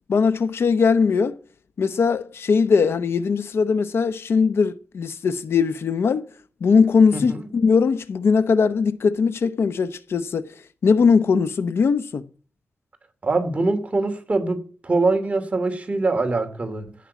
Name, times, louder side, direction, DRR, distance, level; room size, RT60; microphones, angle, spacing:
voice 1, 0.1-1.4 1.8-6.2 6.6-10.4 10.8-12.2, left 5 dB, 80° left, 0.8 m, -20 dB
voice 2, 7.1-7.5 13.2-17.0, right 3 dB, 30° right, 2.6 m, -23 dB
17.0 x 6.2 x 8.2 m
wide cardioid pair, 125°, 4 cm